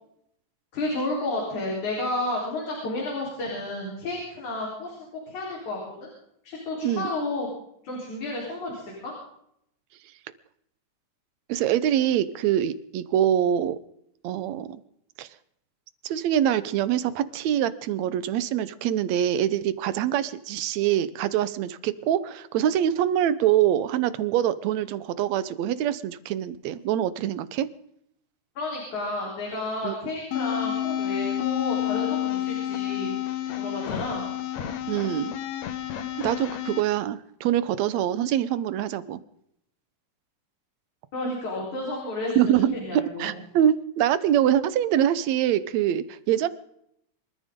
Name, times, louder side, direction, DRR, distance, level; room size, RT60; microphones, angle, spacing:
voice 1, 0.7-5.0 5.3-6.1 6.4-7.5 7.8-9.1 28.6-33.1 33.6-34.2 41.1-43.3, left 2 dB, 85° left, -3 dB, 5.4 m, -31 dB
voice 2, 11.5-13.8 14.2-14.8 15.2-15.3 16.0-27.7 29.8-29.9 34.9-35.3 36.2-39.2 42.4-46.5, right 11 dB, 75° right, 15 dB, 2.1 m, -24 dB
sound 1, 30.3-36.8, left 12 dB, 70° left, 2.4 m, -29 dB
27.0 x 13.5 x 3.7 m, 0.73 s
omnidirectional pair, 3.3 m